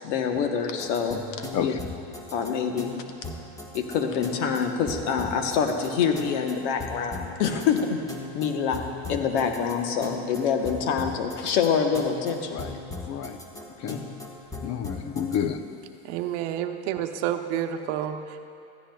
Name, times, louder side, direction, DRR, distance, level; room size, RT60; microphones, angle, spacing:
voice 1, 0.0-1.7 2.3-2.9 3.7-8.0 8.3-12.6 13.9-14.0, left 6 dB, 80° left, 5 dB, 1.1 m, -26 dB
sound 1, 0.8-15.4, left 2 dB, 10° left, 1.3 m, -39 dB
voice 2, 13.1-13.4 13.8-14.0 14.6-15.7, left 8 dB, 50° left, 10 dB, 0.8 m, -29 dB
voice 3, 16.0-18.4, right 10 dB, 75° right, 7 dB, 0.8 m, -29 dB
15.5 x 14.0 x 2.3 m, 2.7 s
supercardioid pair, 100°, 35 cm